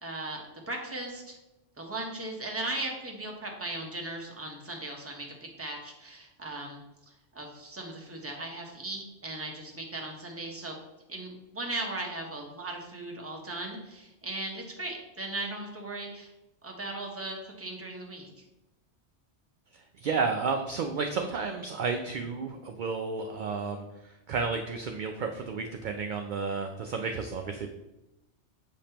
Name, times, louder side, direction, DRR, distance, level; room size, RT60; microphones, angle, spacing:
voice 1, 0.0-1.3 1.8-6.8 7.3-10.7 11.1-16.3 16.6-18.3, right 2 dB, 15° right, 0 dB, 0.9 m, -37 dB
voice 2, 20.0-27.7, right 4 dB, 60° right, 4 dB, 0.5 m, -32 dB
7.3 x 5.2 x 2.9 m, 0.96 s
omnidirectional pair, 1.2 m